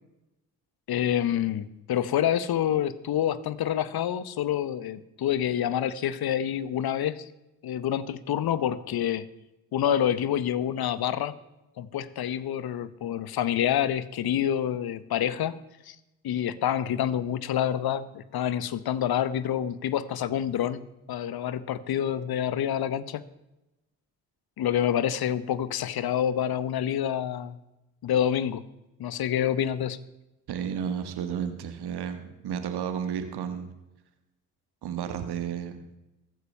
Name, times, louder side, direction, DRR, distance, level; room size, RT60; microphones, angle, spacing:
voice 1, 0.9-7.2 7.6-9.2 9.7-11.3 11.8-15.6 15.9-16.0 16.2-23.2 24.6-27.6 28.0-28.6 29.0-30.0, left 10 dB, 60° left, 17 dB, 1.0 m, -27 dB
voice 2, 30.5-33.7 34.8-35.9, right 8 dB, 65° right, 8 dB, 1.7 m, -32 dB
15.0 x 9.4 x 5.5 m, 0.97 s
hypercardioid pair, 45°, 41 cm